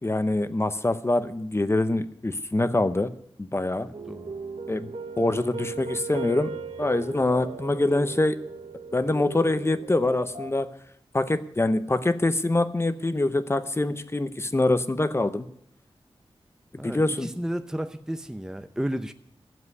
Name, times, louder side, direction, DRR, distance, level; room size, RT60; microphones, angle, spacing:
voice 1, 0.0-3.1 3.4-3.9 4.7-4.9 5.2-6.5 6.8-8.4 8.9-10.7 11.1-15.5 16.8-17.3, left 2 dB, 25° left, 11 dB, 0.8 m, -24 dB
voice 2, 3.8-4.3 16.8-19.1, equal, 5° right, 8 dB, 0.6 m, -33 dB
sound 1, 3.9-10.5, right 4 dB, 85° right, 1.1 m, -37 dB
12.5 x 7.5 x 9.6 m, 0.71 s
wide cardioid pair, 90°, 10 cm